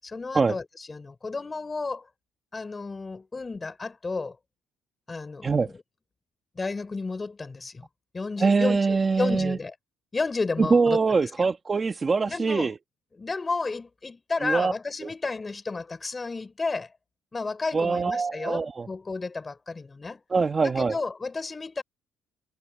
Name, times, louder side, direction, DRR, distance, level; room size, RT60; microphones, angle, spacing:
voice 1, 0.0-2.1 2.5-4.4 5.1-5.8 6.5-7.9 8.1-9.7 10.1-11.0 11.4-11.5 12.3-12.7 13.2-16.9 17.3-20.2 20.6-21.8, left 3 dB, 20° left, 6.6 m, -32 dB
voice 2, 8.4-9.6 10.6-12.8 14.4-14.7 15.0-15.1 17.7-18.9 20.3-20.9, right 4 dB, 25° right, 1.6 m, -23 dB
cardioid pair, 120°, 0 cm